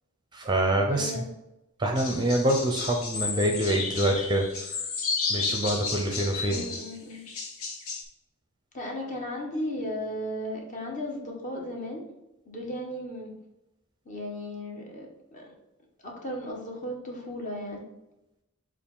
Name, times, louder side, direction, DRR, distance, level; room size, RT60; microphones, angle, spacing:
voice 1, 0.3-1.2 1.8-4.5 5.3-6.6, right 1 dB, 20° right, 2 dB, 0.6 m, -25 dB
voice 2, 0.9-1.3 6.4-7.2 8.7-12.0 12.5-13.3 14.0-15.5 16.0-17.8, left 1 dB, 35° left, -1 dB, 1.4 m, -35 dB
sound 1, 2.0-8.0, left 4 dB, 75° left, 1.0 m, -32 dB
6.9 x 2.5 x 5.4 m, 0.91 s
head